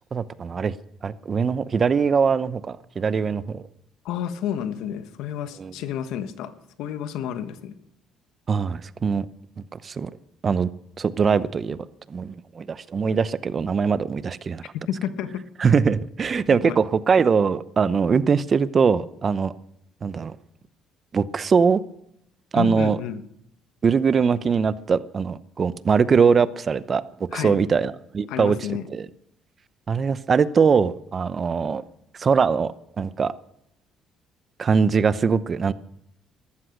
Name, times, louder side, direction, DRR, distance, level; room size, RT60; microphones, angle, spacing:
voice 1, 0.1-0.8 1.0-3.6 5.6-5.7 8.5-9.3 9.6-10.1 10.4-10.7 11.0-11.8 12.1-14.6 15.6-19.5 20.0-20.4 21.1-21.8 22.5-23.0 23.8-27.0 27.3-28.6 28.9-29.1 29.9-31.8 32.1-33.3 34.6-35.7, right 5 dB, 40° right, 0.8 m, -22 dB
voice 2, 4.0-6.5 6.8-7.8 14.9-15.4 16.6-16.8 22.5-23.2 27.3-27.6 28.3-28.9, left 9 dB, 80° left, 1.2 m, -30 dB
14.5 x 12.5 x 6.6 m
cardioid pair, 95°, 0 cm